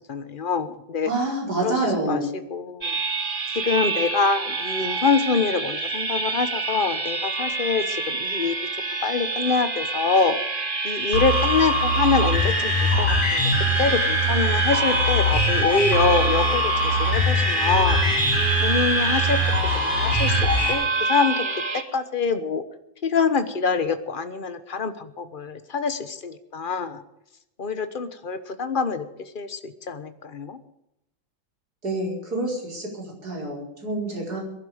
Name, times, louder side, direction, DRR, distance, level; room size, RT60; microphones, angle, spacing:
voice 1, 0.0-1.1 1.6-2.2 2.5-3.0 3.5-8.6 9.0-10.4 10.8-13.5 13.8-18.0 18.6-19.4 19.7-22.6 23.0-27.0 27.6-29.1 29.3-30.6, left 5 dB, 30° left, 10 dB, 1.1 m, -25 dB
voice 2, 1.0-2.3 31.8-34.4, right 2 dB, 50° right, -1 dB, 5.5 m, -27 dB
sound 1, 2.8-21.8, right 3 dB, 30° right, 1.5 m, -27 dB
sound 2, 11.1-20.7, equal, 65° left, 3.6 m, -22 dB
22.0 x 11.5 x 5.1 m, 0.83 s
omnidirectional pair, 2.1 m